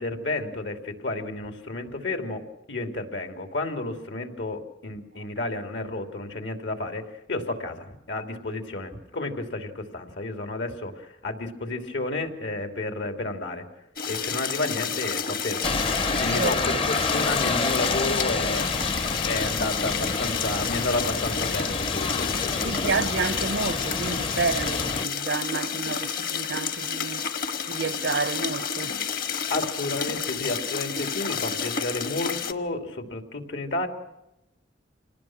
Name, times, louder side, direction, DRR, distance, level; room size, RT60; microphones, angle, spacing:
voice 1, 0.0-2.4 2.7-13.7 14.1-18.7 19.3-22.9 29.5-33.9, left 2 dB, 85° left, 3.0 m, -31 dB
sound 1, 14.0-32.5, left 6 dB, 55° left, 1.3 m, -30 dB
sound 2, 15.6-25.0, left 3 dB, 30° left, 0.7 m, -29 dB
voice 2, 16.1-16.8 22.6-27.3 27.7-29.0, right 4 dB, 75° right, 0.7 m, -30 dB
26.5 x 19.0 x 6.1 m
head